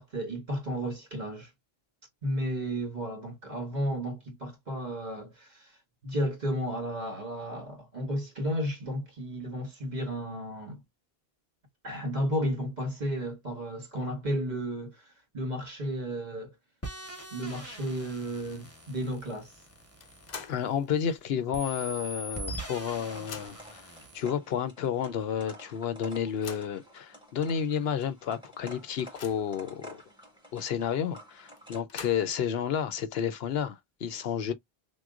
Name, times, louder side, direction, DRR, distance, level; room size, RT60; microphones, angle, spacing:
voice 1, 0.0-1.5 2.2-5.8 6.0-10.8 11.8-16.5 17.3-19.6, equal, 45° right, 2.0 m, -33 dB
sound 1, 16.8-21.1 21.5-24.2, right 1 dB, 15° left, 1.2 m, -43 dB
sound 2, 20.0-20.7 21.1-21.2 22.3-22.4 22.7-23.8 24.5-24.6 25.0-25.1 26.1-26.8 27.5-27.6 28.0-28.1 28.6-29.6 31.6-32.5, left 5 dB, 50° left, 0.7 m, -45 dB
voice 2, 20.5-23.9 24.1-30.0 30.5-34.5, left 8 dB, 75° left, 0.9 m, -31 dB
sound 3, 22.3-31.8, equal, 5° right, 1.7 m, -51 dB
6.0 x 2.2 x 2.4 m
omnidirectional pair, 1.0 m